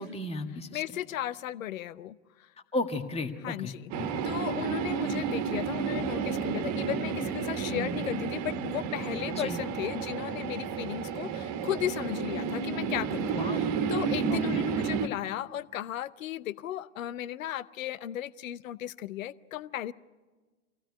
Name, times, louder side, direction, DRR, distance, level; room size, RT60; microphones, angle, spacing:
voice 1, 0.0-1.0 2.7-4.1 7.7-8.0 9.3-9.6 13.3-13.7 14.3-14.7, left 2 dB, 15° left, 5 dB, 1.9 m, -35 dB
voice 2, 0.7-2.5 3.4-3.9 4.2-13.2 13.5-19.9, left 12 dB, 75° left, 18 dB, 0.7 m, -35 dB
sound 1, 3.9-15.1, right 6 dB, 45° right, 1.6 m, -31 dB
25.0 x 16.0 x 9.6 m, 1.3 s
hypercardioid pair, 95°, 40 cm